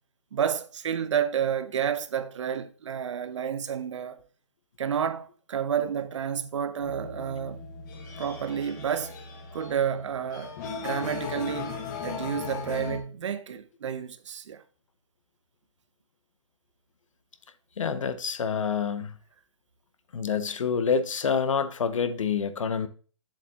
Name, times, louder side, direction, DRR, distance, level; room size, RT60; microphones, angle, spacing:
voice 1, 0.3-4.2 4.8-7.6 8.2-9.2 9.5-10.6 10.8-11.8 12.0-14.6, right 8 dB, 65° right, 0.9 m, -30 dB
sound 1, 6.8-13.0, left 5 dB, 35° left, 1.5 m, -37 dB
voice 2, 17.8-19.1 20.1-22.9, left 6 dB, 80° left, 1.0 m, -27 dB
8.0 x 7.3 x 2.9 m
hypercardioid pair, 155°, 16 cm